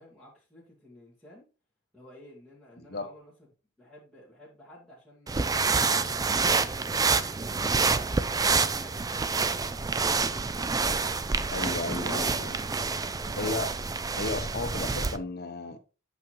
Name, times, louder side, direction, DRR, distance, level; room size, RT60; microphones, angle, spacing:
voice 1, 0.0-1.4 1.9-3.3 3.8-6.9 8.5-10.7 13.3-13.5, left 1 dB, ahead, 2.0 m, -53 dB
voice 2, 2.8-3.1 11.5-12.6 13.4-13.7 14.2-15.8, left 3 dB, 50° left, 1.1 m, -34 dB
sound 1, 5.3-15.2, right 4 dB, 20° right, 0.4 m, -27 dB
8.3 x 6.1 x 3.1 m
head